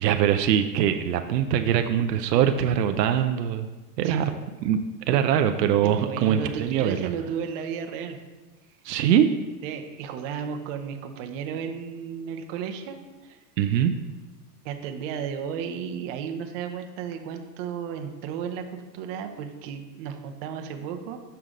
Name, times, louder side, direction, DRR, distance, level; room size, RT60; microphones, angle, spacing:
voice 1, 0.0-3.7 4.0-4.3 4.6-4.8 5.1-7.1 8.8-9.3 13.6-13.9, right 9 dB, 85° right, 7 dB, 0.6 m, -22 dB
voice 2, 4.0-4.4 5.8-8.2 8.9-9.0 9.6-13.4 14.6-21.2, right 7 dB, 50° right, 5 dB, 0.9 m, -34 dB
6.6 x 5.7 x 3.7 m, 1.2 s
hypercardioid pair, 125°, 48 cm